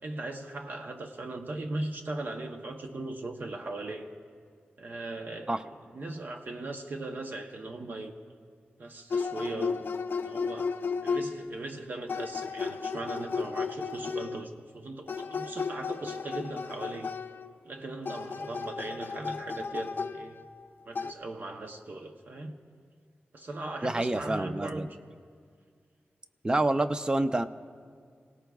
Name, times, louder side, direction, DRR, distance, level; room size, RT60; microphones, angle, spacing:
voice 1, 0.0-4.1 4.8-8.1 8.8-9.9 10.2-10.7 11.0-17.1 17.6-20.4 20.9-22.6 23.3-24.9, right 2 dB, 50° right, 3 dB, 0.8 m, -38 dB
sound 1, 9.1-11.5 12.1-14.5 15.1-17.5 18.0-20.6 21.0-21.1, left 5 dB, 60° left, 0.5 m, -34 dB
voice 2, 23.8-24.9 26.4-27.5, right 2 dB, 20° right, 9 dB, 0.5 m, -27 dB
29.5 x 18.0 x 2.3 m, 2.1 s
wide cardioid pair, 145°, 4 cm